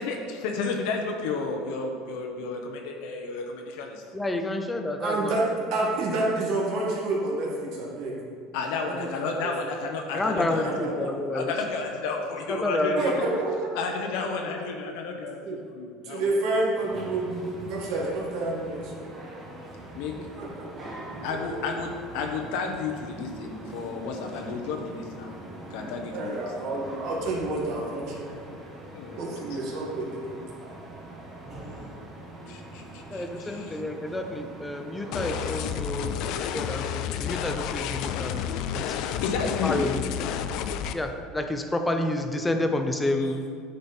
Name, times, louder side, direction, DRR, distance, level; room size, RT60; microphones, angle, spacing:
voice 1, 0.0-4.0 8.5-13.2 13.7-16.3 19.9-20.2 21.2-25.3 25.7-26.5 28.9-29.6 32.5-33.8 39.0-39.9 43.2-43.3, left 4 dB, 75° left, 2 dB, 0.9 m, -32 dB
voice 2, 4.1-5.4 10.1-11.5 12.5-13.2 33.1-38.9 39.6-40.1 40.9-43.4, left 1 dB, 10° left, 6 dB, 0.6 m, -29 dB
voice 3, 5.0-8.2 8.8-9.5 10.6-11.1 13.0-13.7 15.4-15.6 16.0-19.1 20.4-20.7 21.5-21.6 26.1-28.4 29.2-30.3, right 2 dB, 60° right, -3 dB, 2.1 m, -29 dB
sound 1, 16.7-35.8, right 1 dB, 25° right, 1.7 m, -42 dB
sound 2, 35.1-40.9, left 9 dB, 60° left, 0.4 m, -31 dB
9.4 x 5.1 x 4.4 m, 2.1 s
cardioid pair, 140°, 0 cm